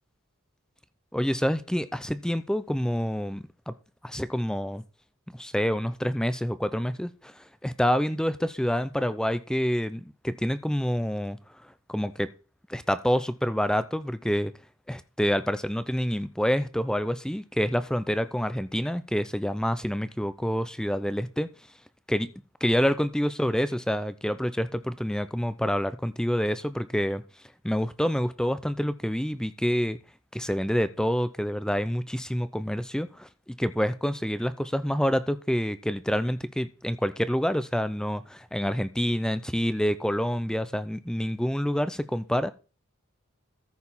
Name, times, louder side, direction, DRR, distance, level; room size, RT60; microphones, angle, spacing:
voice 1, 1.1-3.7 4.0-4.8 5.3-11.4 11.9-12.3 12.7-14.5 14.9-21.5 22.1-22.3 22.6-27.2 27.6-30.0 30.3-42.5, equal, 5° left, 0.5 m, -27 dB
14.0 x 4.7 x 5.5 m
head